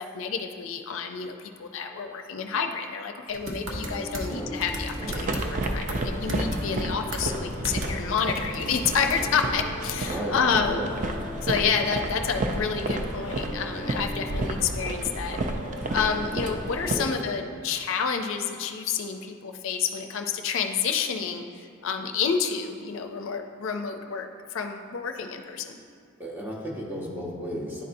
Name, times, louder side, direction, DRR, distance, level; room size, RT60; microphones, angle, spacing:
voice 1, 0.0-5.4 5.7-10.9 11.4-15.4 15.9-25.8, left 6 dB, 70° left, 5 dB, 0.4 m, -29 dB
sound 1, 3.3-4.3 4.6-6.0 6.3-6.8 7.1-7.3 7.6-7.9 8.2-9.4, right 1 dB, 65° right, 0.8 m, -34 dB
sound 2, 3.7-17.3, equal, 25° left, 0.7 m, -40 dB
voice 2, 4.1-4.6 4.9-5.3 10.0-10.9 12.5-12.6 16.9-17.2 26.2-27.8, equal, 10° right, -3 dB, 0.8 m, -35 dB
sound 3, 5.0-17.0, right 2 dB, 35° right, 0.4 m, -32 dB
10.5 x 4.1 x 2.6 m, 2.4 s
head